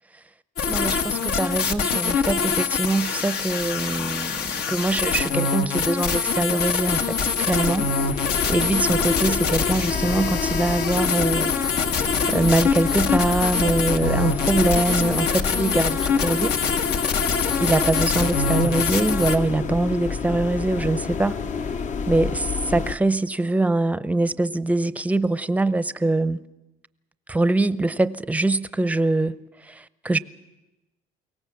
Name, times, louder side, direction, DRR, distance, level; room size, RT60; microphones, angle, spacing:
sound 1, 0.6-19.4, left 5 dB, 70° left, 1.4 m, -24 dB
voice 1, 0.7-11.5 11.9-12.0 12.3-16.6 17.6-21.4 22.1-26.4 27.3-29.4 29.6-30.2, right 2 dB, 10° right, 0.6 m, -23 dB
sound 2, 6.7-23.0, left 5 dB, 45° left, 0.8 m, -29 dB
23.0 x 18.0 x 7.3 m
cardioid pair, 110°, 17 cm